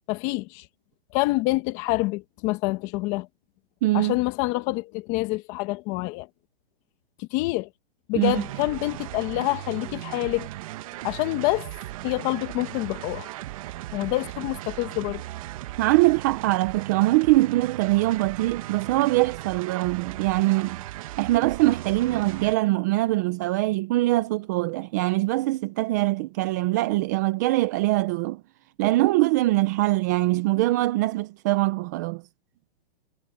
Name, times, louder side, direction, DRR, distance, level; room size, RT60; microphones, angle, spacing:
voice 1, 0.1-0.7 1.1-3.3 3.9-6.3 7.2-7.7 8.1-10.5 11.0-11.7 12.0-13.3 13.9-15.2, left 21 dB, 25° left, 1.3 m, -27 dB
voice 2, 3.8-4.1 8.2-8.4 15.8-20.8 21.2-28.4 28.8-32.2, right 19 dB, 20° right, 0.5 m, -23 dB
sound 1, 8.2-22.6, right 16 dB, 35° right, 1.3 m, -37 dB
hypercardioid pair, 160°, 29 cm